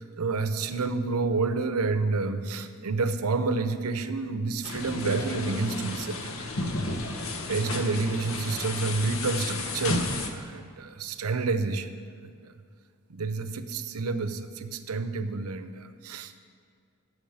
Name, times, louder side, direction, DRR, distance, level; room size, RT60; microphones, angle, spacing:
voice 1, 0.0-6.3 7.5-11.9 12.2-12.3 13.1-16.3, right 3 dB, 85° right, 10 dB, 0.7 m, -29 dB
sound 1, 4.6-10.3, left 2 dB, 65° left, 1.0 m, -32 dB
8.8 x 7.1 x 8.7 m, 2.2 s
head